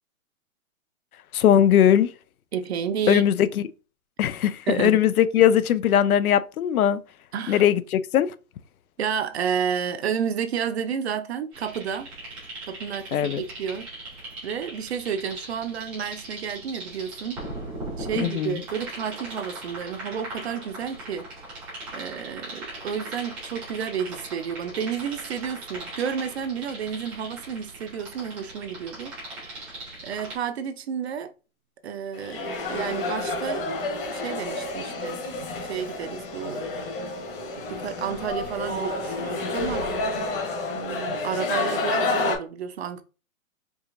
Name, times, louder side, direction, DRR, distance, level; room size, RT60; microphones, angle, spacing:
voice 1, 1.3-2.1 3.1-3.5 4.2-7.0 7.5-8.3 13.1-13.4 18.2-18.6, left 10 dB, 85° left, 0.6 m, -20 dB
voice 2, 2.5-3.2 4.7-5.0 7.3-7.6 9.0-12.1 12.6-13.9 14.4-17.4 18.0-21.3 21.9-29.7 30.0-31.3 31.8-33.7 34.1-35.2 35.6-36.7 37.7-39.9 40.7-43.0, right 7 dB, 50° right, 0.6 m, -31 dB
sound 1, 11.5-30.3, right 2 dB, 5° right, 0.5 m, -39 dB
sound 2, 32.1-42.4, left 3 dB, 40° left, 1.2 m, -29 dB
4.7 x 2.9 x 2.5 m
hypercardioid pair, 165°, 42 cm